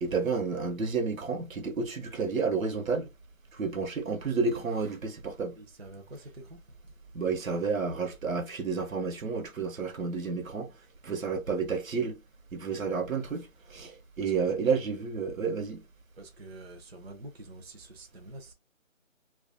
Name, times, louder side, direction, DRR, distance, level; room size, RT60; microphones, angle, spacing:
voice 1, 0.0-3.1 3.5-5.6 7.1-10.7 11.0-12.2 12.5-15.8, right 5 dB, 80° right, 0.8 m, -30 dB
voice 2, 5.6-6.6 14.2-14.5 16.2-18.5, right 1 dB, 50° right, 0.5 m, -47 dB
2.3 x 2.2 x 2.4 m
figure-of-eight pair, 175°, 40 cm